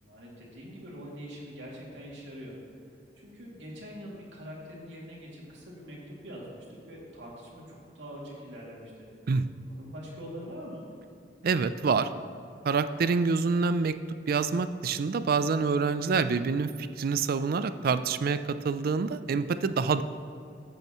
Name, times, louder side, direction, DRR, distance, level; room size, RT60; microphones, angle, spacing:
voice 1, 0.0-2.5 3.2-9.1 9.7-10.8, equal, 80° right, -4 dB, 2.5 m, -44 dB
voice 2, 11.4-12.1 12.6-14.0 14.3-20.0, right 5 dB, 55° right, 12 dB, 0.4 m, -27 dB
13.5 x 8.7 x 3.0 m, 2.5 s
head